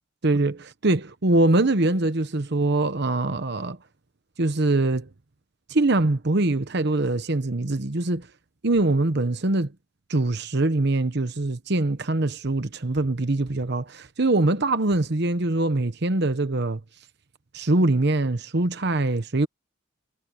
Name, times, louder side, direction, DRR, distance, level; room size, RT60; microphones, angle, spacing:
voice 1, 0.2-3.8 4.4-5.1 5.7-8.3 8.6-9.7 10.1-16.8 17.5-19.5, right 2 dB, 55° right, 1.0 m, -23 dB
head